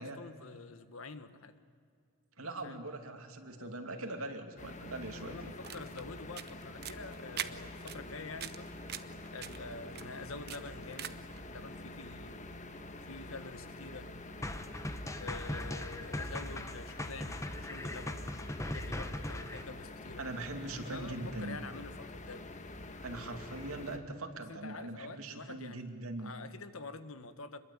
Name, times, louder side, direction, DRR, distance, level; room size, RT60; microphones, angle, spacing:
voice 1, 0.0-1.6 2.4-2.8 3.5-4.3 5.1-8.7 9.3-11.2 11.4-12.5 13.1-14.1 15.2-18.2 18.6-20.3 20.8-22.6 23.4-23.5 24.5-25.9 26.2-27.6, left 3 dB, 75° left, 11 dB, 1.4 m, -47 dB
voice 2, 2.4-5.6 20.2-21.6 23.0-26.3, right 2 dB, 85° right, 5 dB, 2.7 m, -41 dB
sound 1, 4.6-24.0, left 2 dB, 35° left, 1.5 m, -47 dB
sound 2, 5.5-11.4, right 10 dB, 50° right, 1.0 m, -45 dB
sound 3, 14.4-19.6, left 1 dB, 15° left, 1.1 m, -39 dB
26.0 x 22.0 x 8.7 m, 2.2 s
head